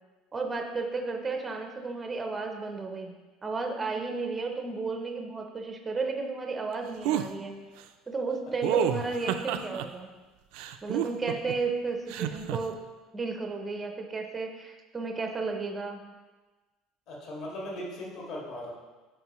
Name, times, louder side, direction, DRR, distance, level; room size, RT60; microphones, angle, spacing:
voice 1, 0.3-3.1 3.4-7.6 8.1-10.1 10.8-12.8 13.1-16.0, right 4 dB, 15° right, 4 dB, 0.5 m, -33 dB
sound 1, 7.0-7.3 8.6-9.9 10.5-11.5 12.1-12.6, right 9 dB, 70° right, 0.4 m, -29 dB
voice 2, 17.1-18.7, left 1 dB, 50° left, -3 dB, 1.8 m, -38 dB
9.1 x 4.8 x 3.0 m, 1.2 s
cardioid pair, 175°, 0 cm